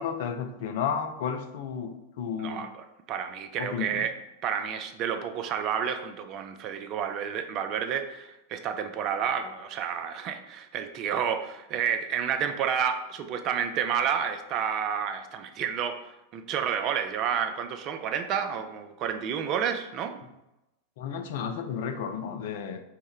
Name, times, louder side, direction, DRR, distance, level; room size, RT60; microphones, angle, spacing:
voice 1, 0.0-2.7 3.6-4.0 21.0-22.8, left 7 dB, 55° left, 7 dB, 0.4 m, -32 dB
voice 2, 2.4-4.1 4.4-20.2, right 8 dB, 35° right, 8 dB, 0.4 m, -30 dB
4.4 x 2.1 x 3.5 m, 0.92 s
figure-of-eight pair, 90°, 0 cm